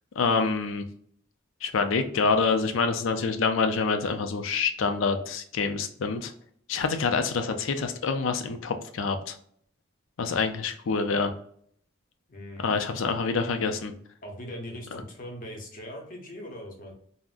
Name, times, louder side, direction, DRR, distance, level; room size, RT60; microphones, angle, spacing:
voice 1, 0.2-0.8 1.6-6.3 6.7-9.3 10.2-11.3 12.6-13.9, left 4 dB, 70° left, 7 dB, 0.4 m, -26 dB
voice 2, 12.3-12.8 14.2-16.9, equal, 40° left, 1 dB, 0.7 m, -40 dB
3.5 x 2.1 x 2.4 m, 0.63 s
head